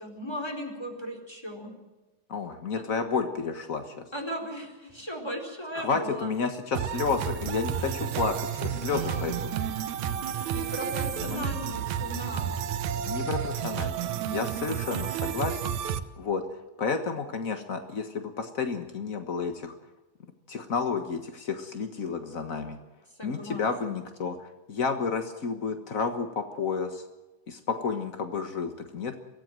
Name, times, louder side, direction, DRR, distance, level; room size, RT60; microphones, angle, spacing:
voice 1, 0.0-1.7 4.1-6.3 8.7-9.4 10.5-12.5 14.1-14.5 23.2-24.0, equal, 10° left, 2 dB, 4.1 m, -37 dB
voice 2, 2.3-4.0 5.7-9.5 11.3-11.4 13.0-16.4 16.8-19.7 20.5-22.8 23.2-27.0 27.5-29.1, left 5 dB, 70° left, 7 dB, 0.7 m, -31 dB
sound 1, 6.7-16.0, right 9 dB, 70° right, 2.2 m, -31 dB
24.0 x 16.0 x 7.6 m, 1.1 s
omnidirectional pair, 3.8 m